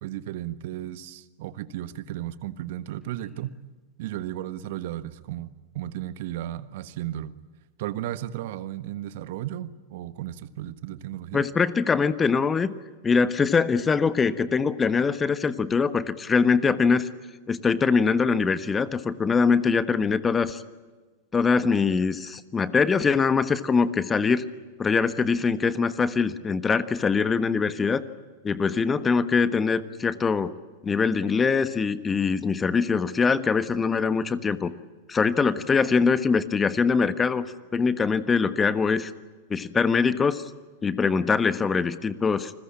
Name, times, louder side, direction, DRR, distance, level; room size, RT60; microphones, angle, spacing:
voice 1, 0.0-3.5 4.0-7.4 7.8-11.5, right 13 dB, 55° right, 1.3 m, -34 dB
voice 2, 11.3-12.7 13.0-17.1 17.5-20.6 21.3-24.4 24.8-28.0 28.4-30.5 30.8-34.7 35.1-37.5 37.7-39.1 39.5-40.4 40.8-42.5, left 5 dB, 20° left, 1.3 m, -23 dB
28.5 x 21.0 x 8.8 m
figure-of-eight pair, 95°, 0 cm